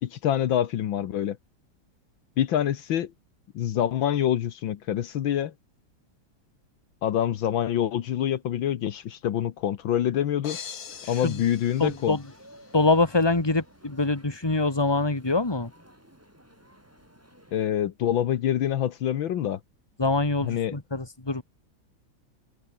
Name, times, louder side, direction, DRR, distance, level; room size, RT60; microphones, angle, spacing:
voice 1, 0.0-1.4 2.4-3.1 3.5-5.5 7.0-10.6 11.1-12.2 17.5-19.6 20.4-20.7, left 10 dB, 75° left, 1.8 m, -26 dB
sound 1, 10.4-12.7, left 7 dB, 50° left, 1.8 m, -42 dB
sound 2, 10.9-17.7, equal, 5° right, 7.1 m, -55 dB
voice 2, 11.8-12.2 12.7-15.7 20.0-21.4, left 3 dB, 10° left, 2.3 m, -24 dB
open air
omnidirectional pair, 2.2 m